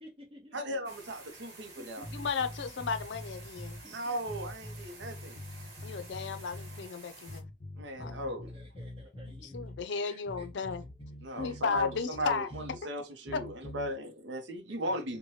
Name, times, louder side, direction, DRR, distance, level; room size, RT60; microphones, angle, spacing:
voice 1, 0.0-0.9 1.8-2.3 2.7-2.8 3.8-4.0 8.0-10.5 11.1-11.6 12.5-12.6 13.2-13.3 14.7-14.9, left 1 dB, 30° right, 0.9 m, -54 dB
voice 2, 0.5-2.1 3.9-5.4 7.8-8.5 11.2-15.2, equal, 80° right, 0.7 m, -37 dB
sound 1, 0.8-7.4, right 3 dB, 60° right, 1.1 m, -51 dB
sound 2, 2.0-3.8 4.3-6.9 7.3-9.8 10.3-12.8 13.3-13.9, left 1 dB, 30° left, 1.1 m, -44 dB
voice 3, 2.1-3.8 5.8-7.5 8.0-8.1 9.5-10.8 11.3-12.5 13.3-13.4, left 5 dB, 75° left, 0.4 m, -34 dB
3.1 x 2.2 x 2.7 m
head